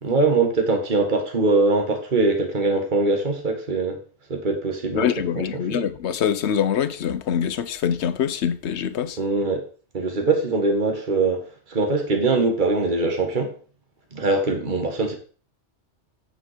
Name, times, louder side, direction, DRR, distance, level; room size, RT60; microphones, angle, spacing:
voice 1, 0.0-4.0 4.3-5.1 5.4-5.8 9.2-9.6 9.9-11.4 11.7-13.5 14.1-15.1, right 3 dB, 40° right, 1.7 m, -22 dB
voice 2, 4.9-9.2, left 8 dB, 70° left, 1.0 m, -24 dB
9.2 x 5.3 x 5.0 m
omnidirectional pair, 1.2 m